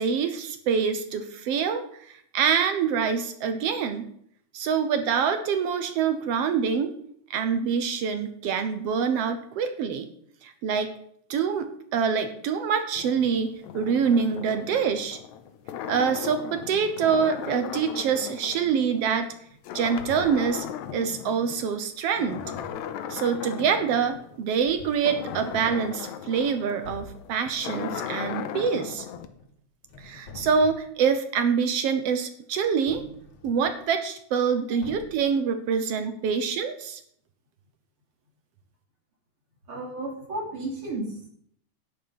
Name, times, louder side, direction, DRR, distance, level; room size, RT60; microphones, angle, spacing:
voice 1, 0.0-2.1 2.3-4.1 4.5-6.9 7.3-10.1 10.4-10.9 11.3-15.2 15.9-19.3 19.7-20.7 20.9-22.4 23.1-29.1 30.0-33.0 33.4-37.0, right 6 dB, 65° right, 9 dB, 1.7 m, -25 dB
sound 1, 12.9-19.4 19.6-21.7 22.1-29.3, left 9 dB, 80° left, 2.1 m, -37 dB
sound 2, 20.0-20.6 22.2-22.9 24.1-24.2 24.7-25.9 26.4-26.5 26.8-27.3 28.9-29.5 29.8-31.0 32.9-33.8 34.8-35.3, left 2 dB, 55° left, 1.9 m, -45 dB
voice 2, 39.7-41.3, right 2 dB, 45° right, -2 dB, 3.8 m, -33 dB
11.0 x 8.9 x 5.7 m, 0.67 s
omnidirectional pair, 3.4 m